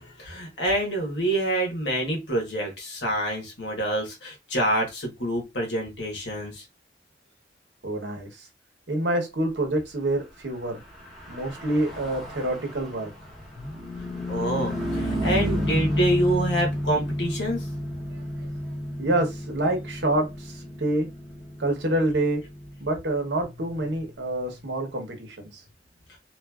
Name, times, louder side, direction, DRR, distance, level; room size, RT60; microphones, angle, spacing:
voice 1, 0.0-6.6 14.3-17.7, right 1 dB, 90° left, 1.2 m, -27 dB
voice 2, 7.8-8.5 8.9-10.8 11.3-13.1 19.0-21.1 21.6-22.4 22.8-25.6, right 1 dB, 85° right, 1.0 m, -27 dB
Car passing by / Truck, 10.8-24.5, left 1 dB, ahead, 0.9 m, -32 dB
3.1 x 2.5 x 2.3 m
head